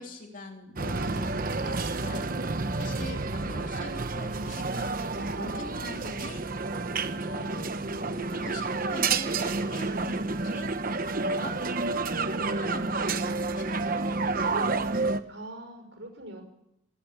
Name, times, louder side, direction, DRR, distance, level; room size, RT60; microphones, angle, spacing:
voice 1, 0.0-2.3 2.8-5.1 5.3-6.4 7.3-7.7 8.1-10.7 11.2-11.6 12.1-14.3, left 2 dB, 40° left, 2 dB, 3.4 m, -43 dB
sound 1, 0.8-15.2, right 3 dB, 45° right, 1.0 m, -30 dB
voice 2, 15.2-16.4, right 1 dB, 60° right, 6 dB, 5.9 m, -45 dB
20.5 x 17.0 x 8.8 m, 0.79 s
head